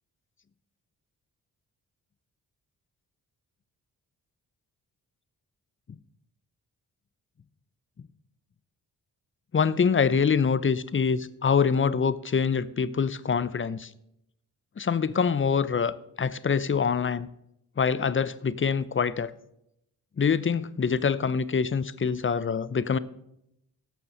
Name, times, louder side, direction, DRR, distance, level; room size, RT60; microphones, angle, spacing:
voice 1, 9.5-13.9 14.8-17.3 17.8-19.3 20.2-23.0, left 6 dB, 30° left, 0.7 m, -25 dB
11.5 x 6.8 x 5.5 m
supercardioid pair, 45°, 42 cm